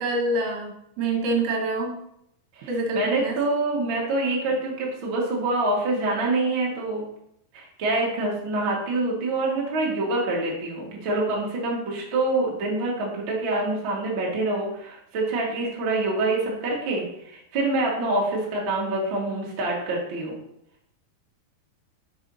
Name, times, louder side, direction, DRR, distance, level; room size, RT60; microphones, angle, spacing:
voice 1, 0.0-2.0 2.7-3.4, right 2 dB, 75° right, 1 dB, 2.9 m, -26 dB
voice 2, 2.9-7.0 7.5-20.4, right 2 dB, 50° right, -3 dB, 1.5 m, -26 dB
6.8 x 4.5 x 5.5 m, 0.77 s
omnidirectional pair, 5.0 m